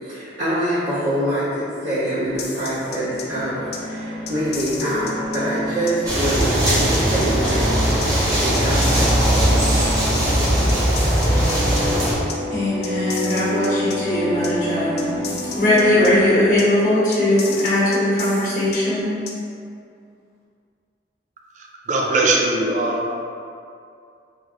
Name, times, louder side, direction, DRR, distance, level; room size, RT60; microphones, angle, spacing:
voice 1, 0.0-7.6 8.4-9.3, equal, 80° right, -15 dB, 1.2 m, -25 dB
sound 1, 2.2-16.3, equal, 25° left, 0.7 m, -29 dB
sound 2, 2.4-3.2 3.7-3.8 4.3-5.4 5.9-6.0 6.4-7.5 8.0-8.1 8.5-9.7 10.2-10.3 10.7-11.8 12.3-12.4 12.8-14.0 14.4-14.5 15.0-16.1 16.6-16.7 17.1-18.8 19.3-19.4, left 6 dB, 65° left, 0.4 m, -33 dB
sound 3, 6.0-12.1, equal, 20° right, 0.8 m, -19 dB
voice 2, 12.5-15.1 15.6-19.1, left 1 dB, 45° left, -8 dB, 1.0 m, -19 dB
voice 3, 21.9-23.1, right 2 dB, 40° right, 0 dB, 0.4 m, -20 dB
3.2 x 3.0 x 3.7 m, 2.4 s
head